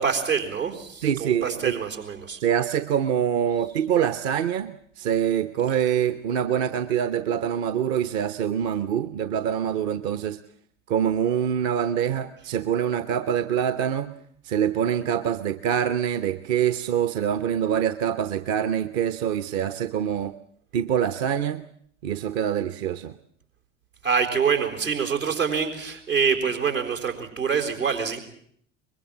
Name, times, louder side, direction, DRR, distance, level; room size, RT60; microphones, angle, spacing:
voice 1, 0.0-2.4 24.0-28.2, right 6 dB, 85° right, 2 dB, 4.3 m, -25 dB
voice 2, 1.0-1.8 2.4-10.4 10.9-14.1 14.4-20.4 20.7-21.6 22.0-23.1, right 9 dB, 55° right, 12 dB, 1.0 m, -25 dB
23.5 x 21.5 x 7.5 m, 0.66 s
figure-of-eight pair, 70°, 39 cm